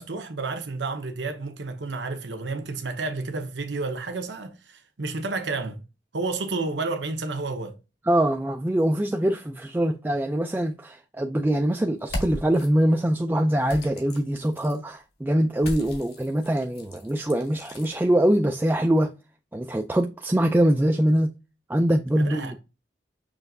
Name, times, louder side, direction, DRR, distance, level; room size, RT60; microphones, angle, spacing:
voice 1, 0.0-5.8 6.1-7.8 22.2-22.6, right 3 dB, 70° right, 0.9 m, -31 dB
voice 2, 8.0-19.1 19.5-21.3 21.7-22.5, right 1 dB, 10° right, 0.3 m, -23 dB
sound 1, 12.0-12.7 13.7-14.8 15.6-17.9, left 1 dB, 55° left, 1.8 m, -37 dB
6.3 x 3.3 x 2.5 m
head